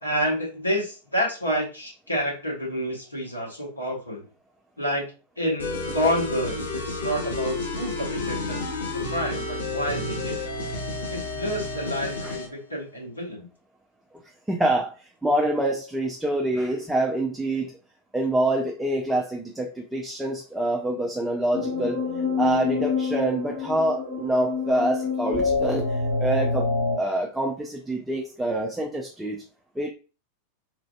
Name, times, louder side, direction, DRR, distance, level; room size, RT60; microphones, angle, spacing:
voice 1, 0.0-4.3 4.8-5.1 5.4-8.6 9.1-10.5 11.1-13.5, equal, 85° left, -3 dB, 1.1 m, -29 dB
sound 1, 5.6-12.5, left 2 dB, 70° left, 0.8 m, -31 dB
voice 2, 14.5-17.7 18.1-22.0 22.4-26.7 27.0-29.4 29.8-29.9, right 1 dB, 5° right, 1 dB, 0.4 m, -26 dB
sound 2, 21.5-27.0, left 4 dB, 40° left, 1.2 m, -26 dB
3.1 x 2.5 x 2.2 m, 0.33 s
figure-of-eight pair, 90°, 0 cm